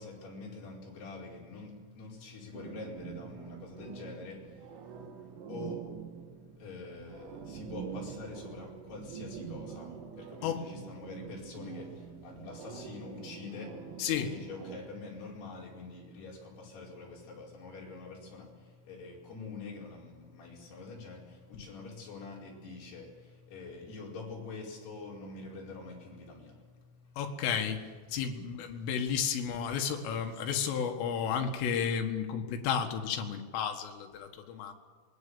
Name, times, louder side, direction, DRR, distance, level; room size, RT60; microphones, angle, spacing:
voice 1, 0.0-27.2 28.8-28.9, left 3 dB, 55° left, -3 dB, 6.9 m, -46 dB
sound 1, 2.5-14.8, right 7 dB, 80° right, 4.3 m, -45 dB
voice 2, 14.0-14.4 21.5-21.6 27.2-34.7, left 7 dB, 80° left, 4 dB, 4.4 m, -32 dB
25.0 x 21.5 x 7.1 m, 1.6 s
omnidirectional pair, 5.7 m